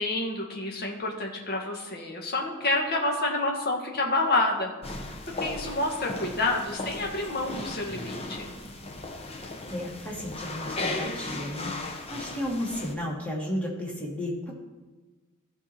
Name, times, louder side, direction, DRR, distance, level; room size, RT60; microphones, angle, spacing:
voice 1, 0.0-4.7 5.4-8.5, left 2 dB, 45° left, 0 dB, 1.6 m, -28 dB
sound 1, 4.8-12.9, left 2 dB, 30° left, 0.9 m, -36 dB
voice 2, 9.7-14.5, left 1 dB, 5° left, -4 dB, 2.3 m, -33 dB
15.5 x 5.3 x 4.3 m, 1.3 s
head